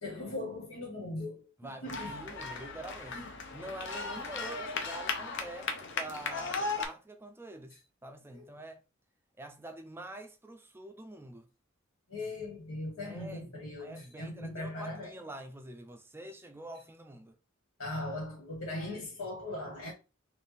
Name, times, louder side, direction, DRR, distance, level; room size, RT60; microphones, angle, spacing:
voice 1, 0.0-2.2 3.1-3.3 8.3-8.4 12.1-15.1 17.8-19.9, left 2 dB, 85° left, 1.8 m, -39 dB
voice 2, 1.6-3.2 3.5-8.8 9.4-11.5 13.0-17.4, right 1 dB, 10° right, 0.5 m, -46 dB
sound 1, 1.9-6.9, left 4 dB, 60° left, 0.8 m, -37 dB
4.4 x 2.5 x 3.4 m
head